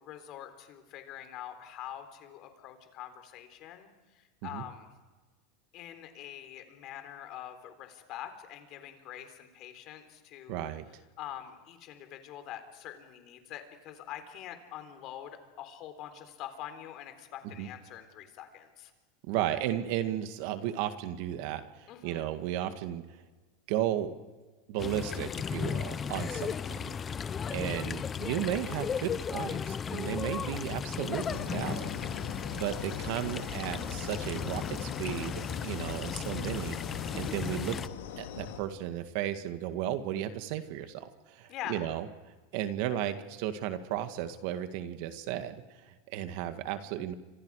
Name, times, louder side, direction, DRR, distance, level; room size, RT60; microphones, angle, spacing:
voice 1, 0.0-3.9 4.2-4.9 5.7-10.7 11.2-18.9 21.9-22.2 26.3-26.7 41.5-41.8, left 11 dB, 45° left, 8 dB, 3.8 m, -45 dB
voice 2, 10.5-10.8 17.4-17.7 19.2-23.0 23.7-24.2 24.7-26.8 27.5-37.8 38.2-42.1 42.5-47.1, right 11 dB, 60° right, 9 dB, 1.9 m, -34 dB
sound 1, 24.8-37.9, left 7 dB, 25° left, 0.7 m, -35 dB
sound 2, 31.1-38.6, left 8 dB, 85° left, 3.6 m, -41 dB
29.5 x 25.5 x 4.9 m, 1.3 s
supercardioid pair, 135°, 0 cm